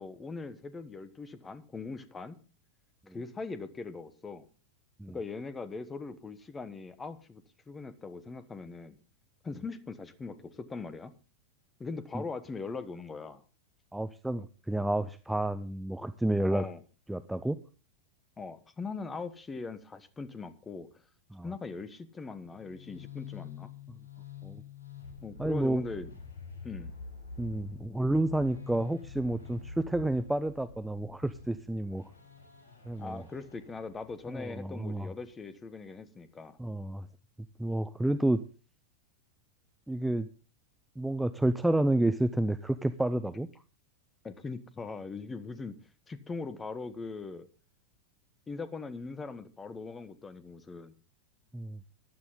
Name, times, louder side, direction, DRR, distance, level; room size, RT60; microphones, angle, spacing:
voice 1, 0.0-2.4 3.1-4.5 5.1-9.0 9.4-11.1 11.8-13.4 16.5-16.8 18.4-20.9 21.4-23.7 25.2-26.1 26.6-26.9 33.0-36.6 44.2-45.7 46.1-47.5 48.5-50.9, left 4 dB, 15° left, 13 dB, 1.3 m, -40 dB
voice 2, 13.9-16.7 17.1-17.6 21.3-21.5 24.4-24.6 25.4-25.8 27.4-32.1 32.9-33.2 34.3-35.1 36.6-37.1 37.6-38.4 39.9-40.3 41.0-43.5 51.5-51.8, right 1 dB, 5° right, 11 dB, 0.6 m, -30 dB
sound 1, 22.4-34.3, left 5 dB, 65° left, 6.1 m, -47 dB
15.0 x 11.0 x 3.8 m, 0.36 s
figure-of-eight pair, 90°, 0 cm